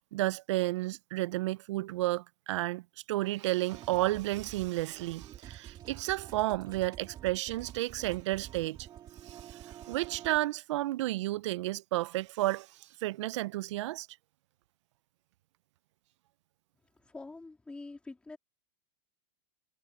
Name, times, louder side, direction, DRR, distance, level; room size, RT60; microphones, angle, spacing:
voice 1, 0.0-8.9 9.2-14.1, right 17 dB, 75° right, 0.5 m, -32 dB
sound 1, 3.7-10.4, right 11 dB, 30° right, 2.0 m, -49 dB
voice 2, 17.0-18.4, left 3 dB, 5° left, 2.6 m, -45 dB
supercardioid pair, 155°, 15 cm